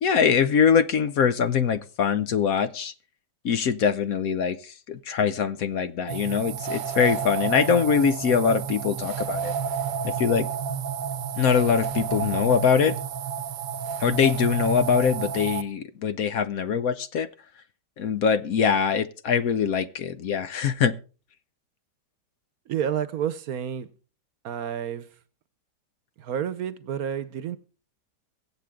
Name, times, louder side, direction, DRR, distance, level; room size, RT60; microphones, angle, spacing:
voice 1, 0.0-2.9 3.4-9.5 10.0-10.5 11.4-12.9 14.0-17.3 18.0-20.9, left 7 dB, 65° left, 1.1 m, -23 dB
sound 1, 6.1-15.6, right 7 dB, 85° right, 1.4 m, -30 dB
voice 2, 22.7-23.9 24.4-25.1 26.2-27.6, right 9 dB, 65° right, 1.2 m, -30 dB
23.0 x 8.2 x 3.6 m
omnidirectional pair, 1.8 m